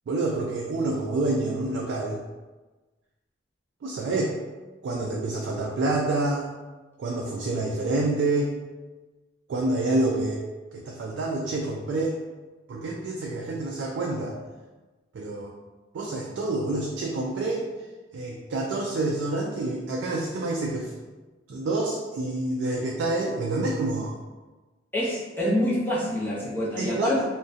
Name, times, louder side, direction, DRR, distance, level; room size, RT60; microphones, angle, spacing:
voice 1, 0.1-2.2 3.8-4.3 4.8-6.5 7.0-8.5 9.5-10.4 10.7-12.2 12.7-14.4 15.1-15.5 15.9-17.7 18.1-20.9 21.5-24.1 26.8-27.2, right 2 dB, 80° right, -1 dB, 0.3 m, -27 dB
voice 2, 24.9-27.2, left 1 dB, 10° left, -7 dB, 0.4 m, -26 dB
2.6 x 2.1 x 2.4 m, 1.2 s
head